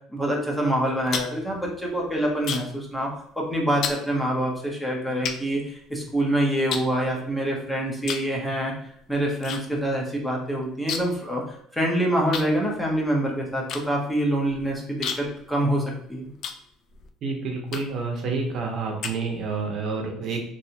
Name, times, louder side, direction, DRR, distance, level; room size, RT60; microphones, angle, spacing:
voice 1, 0.1-3.1 3.4-8.7 9.1-16.3, right 1 dB, 5° left, -2 dB, 0.8 m, -26 dB
sound 1, 0.8-2.9 3.1-3.4 3.8-4.0 4.7-4.8 5.2-6.2 6.7-7.6 8.0-8.3 8.6-9.6 9.9-10.0 10.2-11.3 11.5-11.6 12.3-17.1 17.7-18.1 18.6-19.6, left 6 dB, 50° left, 0.4 m, -33 dB
voice 2, 17.2-20.4, right 4 dB, 45° right, 1 dB, 0.7 m, -29 dB
3.2 x 2.6 x 2.8 m, 0.69 s
cardioid pair, 140°, 0 cm